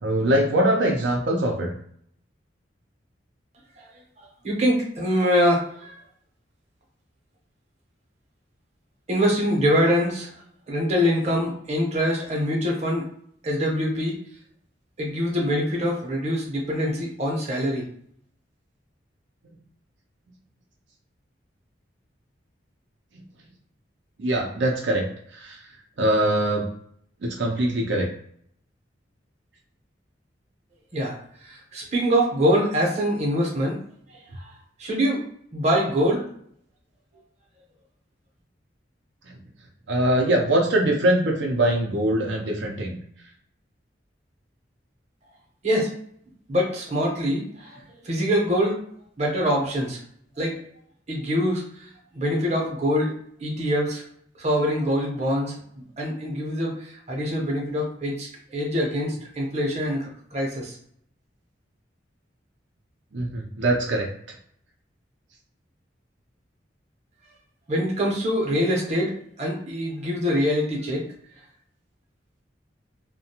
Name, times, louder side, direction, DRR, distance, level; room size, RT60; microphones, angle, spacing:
voice 1, 0.0-1.7 24.2-25.0 25.3-25.6 26.0-26.7 27.2-28.1 39.9-42.9 63.1-64.1, right 1 dB, 75° right, 0 dB, 0.5 m, -22 dB
voice 2, 4.2-5.9 9.1-10.3 10.7-13.1 13.4-14.2 15.0-17.8 30.9-31.1 31.4-33.8 34.1-34.5 34.8-35.2 35.5-36.2 45.6-45.9 46.5-48.8 49.2-50.0 50.4-50.6 51.1-53.1 53.4-54.0 54.4-60.7 67.7-71.1, equal, 35° right, -1 dB, 0.8 m, -24 dB
2.4 x 2.2 x 2.8 m, 0.65 s
head